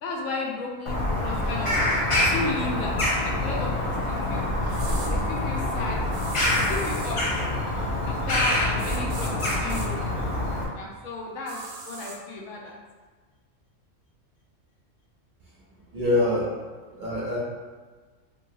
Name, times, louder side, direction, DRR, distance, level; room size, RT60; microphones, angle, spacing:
voice 1, 0.0-1.8 2.2-3.0 3.2-4.5 5.1-6.0 6.5-7.2 8.1-10.2 10.7-12.8, left 2 dB, 80° left, -1 dB, 1.0 m, -34 dB
Bird vocalization bird call bird song, 0.9-10.7, left 1 dB, 55° left, 0.3 m, -26 dB
sound 1, 4.7-5.1 6.1-7.2 8.8-9.9 11.5-12.2, right 3 dB, 85° right, 1.0 m, -39 dB
voice 2, 15.9-16.6 17.0-17.4, left 2 dB, 50° right, -6 dB, 0.7 m, -24 dB
2.9 x 2.7 x 2.6 m, 1.4 s
omnidirectional pair, 1.3 m